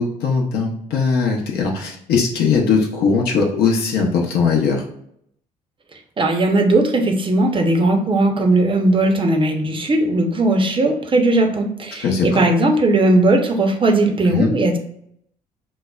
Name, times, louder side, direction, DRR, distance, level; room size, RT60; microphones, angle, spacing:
voice 1, 0.0-4.8 12.0-12.4 14.2-14.5, left 5 dB, 55° left, 0 dB, 0.7 m, -19 dB
voice 2, 6.2-14.8, right 2 dB, 25° right, 3 dB, 0.7 m, -17 dB
5.4 x 2.0 x 2.3 m, 0.71 s
figure-of-eight pair, 45°, 19 cm